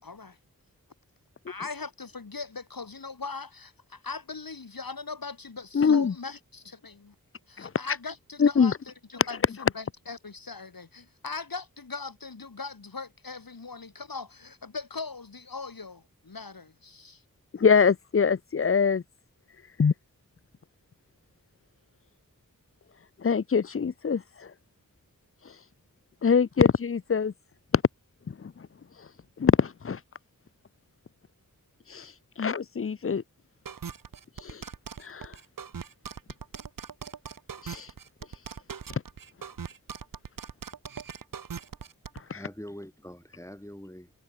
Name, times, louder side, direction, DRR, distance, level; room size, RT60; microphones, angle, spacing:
voice 1, 0.0-0.4 1.5-7.1 7.5-17.2, left 4 dB, 90° left, 3.2 m, -40 dB
voice 2, 5.7-6.1 7.6-7.7 8.4-8.7 17.5-19.0 19.8-19.9 23.2-24.5 26.2-27.3 27.7-27.8 28.3-28.7 29.4-30.0 31.9-32.1 32.4-33.2 34.4-34.6 35.0-35.3 37.6-37.9 42.3-42.4, left 6 dB, 40° left, 0.5 m, -24 dB
sound 1, 33.7-42.2, right 7 dB, 70° right, 0.8 m, -40 dB
voice 3, 42.1-44.1, equal, 10° left, 6.9 m, -44 dB
wide cardioid pair, 45°, 34 cm